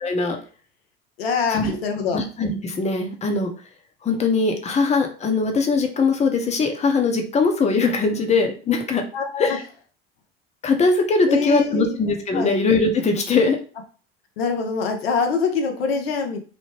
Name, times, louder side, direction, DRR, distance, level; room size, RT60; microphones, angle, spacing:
voice 1, 0.0-0.4 1.5-1.8 2.1-3.5 4.0-9.0 9.4-9.6 10.6-13.6, left 4 dB, 20° left, 4 dB, 0.7 m, -21 dB
voice 2, 1.2-2.2 9.1-9.6 11.3-12.0 12.3-12.5 14.4-16.4, left 5 dB, 85° left, 4 dB, 0.6 m, -24 dB
2.9 x 2.0 x 3.1 m, 0.38 s
hypercardioid pair, 80°, 30 cm